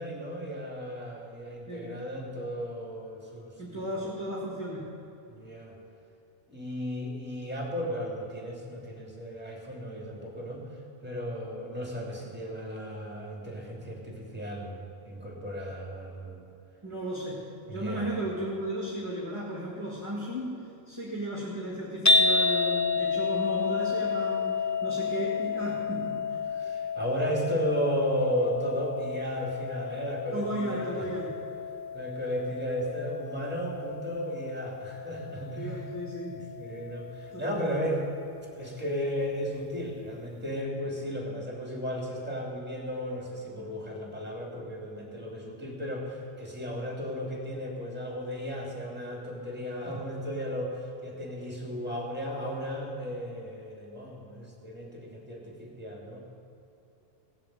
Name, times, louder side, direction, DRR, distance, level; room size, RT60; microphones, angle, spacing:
voice 1, 0.0-3.8 5.3-5.8 6.5-10.7 11.0-16.4 17.6-18.1 26.5-31.1 31.9-35.8 36.3-38.1 38.5-56.2, equal, 10° right, -2 dB, 2.9 m, -34 dB
voice 2, 3.6-4.8 16.8-17.4 17.7-20.5 20.9-26.1 30.3-31.3 35.6-36.4 37.3-37.8, equal, 25° right, -4 dB, 1.9 m, -34 dB
sound 1, 22.1-38.3, left 4 dB, 20° left, 0.5 m, -31 dB
17.0 x 7.5 x 7.9 m, 2.8 s
omnidirectional pair, 1.1 m